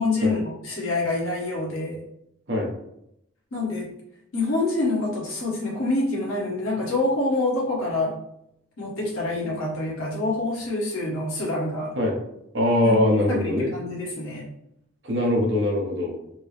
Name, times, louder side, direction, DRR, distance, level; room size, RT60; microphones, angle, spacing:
voice 1, 0.0-2.0 3.5-3.9 4.3-8.2 8.8-11.9 12.8-13.0 13.3-14.4, left 2 dB, 85° left, -4 dB, 1.2 m, -26 dB
voice 2, 12.5-13.7 15.0-16.2, left 1 dB, 55° right, 0 dB, 0.8 m, -22 dB
4.2 x 2.0 x 3.3 m, 0.78 s
head